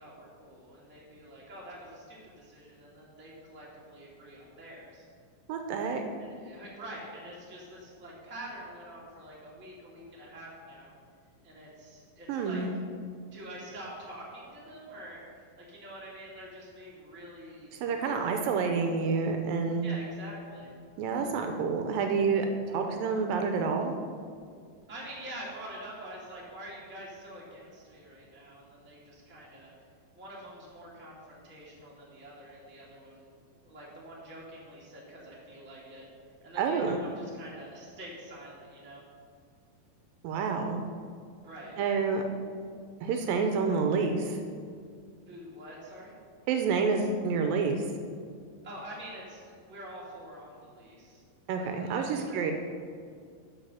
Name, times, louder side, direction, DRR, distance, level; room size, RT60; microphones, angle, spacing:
voice 1, 0.0-5.1 6.2-10.9 11.4-12.6 13.3-18.2 18.5-18.8 19.8-20.7 24.9-29.7 30.1-33.3 33.6-36.0 36.4-39.0 41.4-41.8 45.3-46.1 48.6-51.2 51.5-52.5, right 1 dB, 5° right, -5 dB, 1.1 m, -46 dB
voice 2, 5.5-6.0 12.3-12.7 17.8-19.9 21.0-23.9 36.6-37.0 40.2-40.8 41.8-42.2 43.0-44.4 46.5-47.9 51.5-52.5, right 5 dB, 80° right, 4 dB, 2.2 m, -28 dB
12.5 x 5.4 x 5.6 m, 2.2 s
omnidirectional pair, 4.3 m